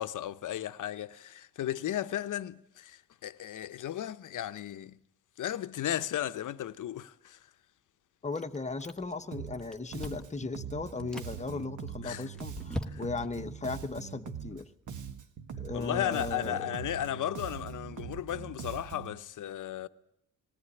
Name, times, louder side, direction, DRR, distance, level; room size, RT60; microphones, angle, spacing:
voice 1, 0.0-5.0 5.4-7.4 12.0-12.3 12.9-13.0 15.7-19.9, left 11 dB, 65° left, 0.9 m, -35 dB
voice 2, 8.2-14.7 15.6-16.7, left 3 dB, 20° left, 1.1 m, -37 dB
Chewing mastication, 8.3-9.3 9.5-10.4 10.9-11.3 11.9-13.3, left 1 dB, ahead, 1.3 m, -41 dB
Bass guitar, 9.3-9.7 9.9-14.6 14.9-19.2, right 8 dB, 60° right, 1.7 m, -42 dB
20.0 x 17.5 x 9.9 m
cardioid pair, 140°, 34 cm